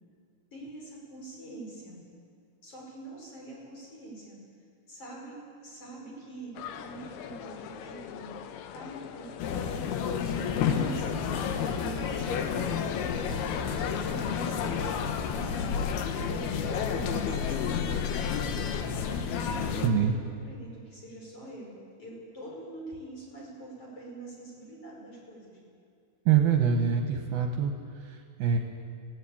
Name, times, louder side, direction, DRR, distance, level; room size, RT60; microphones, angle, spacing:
voice 1, 0.5-2.0 2.6-4.4 4.9-10.2 10.5-25.6, right 2 dB, 30° left, -3 dB, 6.0 m, -45 dB
sound 1, 6.6-16.0, left 9 dB, 90° left, 3.3 m, -42 dB
sound 2, 9.4-19.9, left 7 dB, 70° left, 2.9 m, -30 dB
voice 2, 19.8-20.2 26.3-28.6, right 7 dB, 65° right, 3 dB, 2.8 m, -25 dB
19.0 x 18.0 x 8.7 m, 2.4 s
omnidirectional pair, 5.1 m